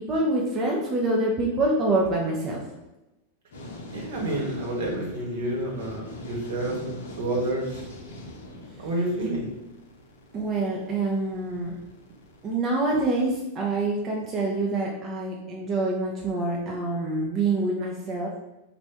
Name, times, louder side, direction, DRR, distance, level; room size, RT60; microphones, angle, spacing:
voice 1, 0.0-2.7 8.8-8.9 10.3-11.8 12.4-18.4, right 2 dB, 30° right, -2 dB, 0.6 m, -26 dB
sound 1, 3.5-12.5, left 1 dB, 60° left, 0.8 m, -43 dB
voice 2, 3.9-7.7 8.8-9.5, right 1 dB, 60° right, -2 dB, 1.2 m, -29 dB
4.3 x 2.5 x 3.4 m, 0.97 s
figure-of-eight pair, 90°, 0 cm